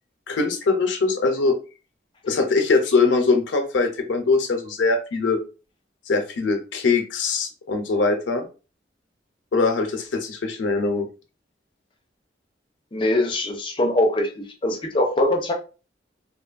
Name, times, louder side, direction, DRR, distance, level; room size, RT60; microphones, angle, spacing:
voice 1, 0.3-1.6 2.2-5.4 6.1-8.4 9.5-11.1, left 3 dB, 90° left, 0.5 m, -22 dB
voice 2, 12.9-15.5, left 1 dB, 30° left, 0.4 m, -22 dB
2.8 x 2.2 x 2.4 m
head